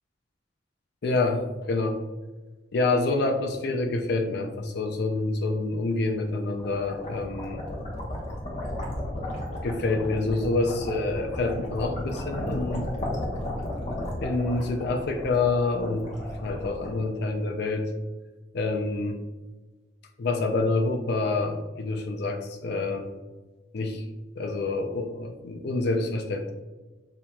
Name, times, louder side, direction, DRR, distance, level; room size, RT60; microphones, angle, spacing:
voice 1, 1.0-2.0 2.7-7.6 9.6-12.9 14.2-16.1 16.4-17.9 18.5-19.2 20.2-23.1 23.7-24.0 24.4-26.5, left 3 dB, 60° left, 4 dB, 0.4 m, -27 dB
sound 1, 6.3-17.4, left 1 dB, 40° left, 1.1 m, -34 dB
7.0 x 2.9 x 2.3 m, 1.2 s
head